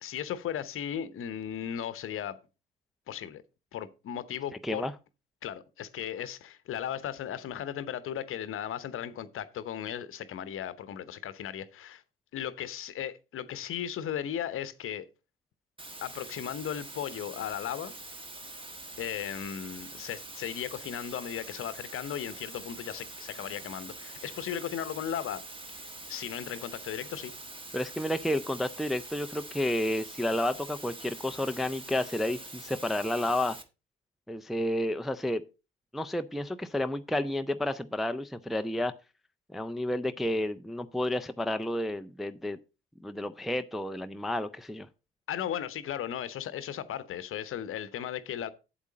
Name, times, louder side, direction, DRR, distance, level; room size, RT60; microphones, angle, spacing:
voice 1, 0.0-2.4 3.1-3.4 3.7-4.9 5.4-12.0 12.3-15.1 16.0-17.9 19.0-25.4 25.8-27.3 45.3-48.5, left 10 dB, 45° left, 1.0 m, -36 dB
sound 1, 15.8-33.6, right 2 dB, 15° right, 1.4 m, -45 dB
voice 2, 27.7-33.6 34.3-35.4 35.9-38.9 39.5-42.6 43.0-44.9, left 1 dB, ahead, 0.5 m, -31 dB
8.2 x 7.8 x 4.1 m
figure-of-eight pair, 55°, 30 cm